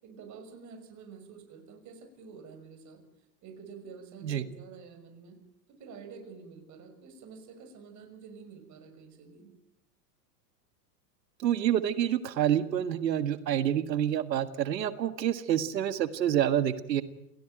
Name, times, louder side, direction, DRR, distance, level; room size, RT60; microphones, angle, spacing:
voice 1, 0.0-3.0 3.4-5.4 5.7-9.5, right 5 dB, 35° right, 6 dB, 6.1 m, -48 dB
voice 2, 11.4-17.0, right 10 dB, 85° right, 12 dB, 1.8 m, -28 dB
28.5 x 18.0 x 9.1 m, 0.82 s
hypercardioid pair, 120°, 49 cm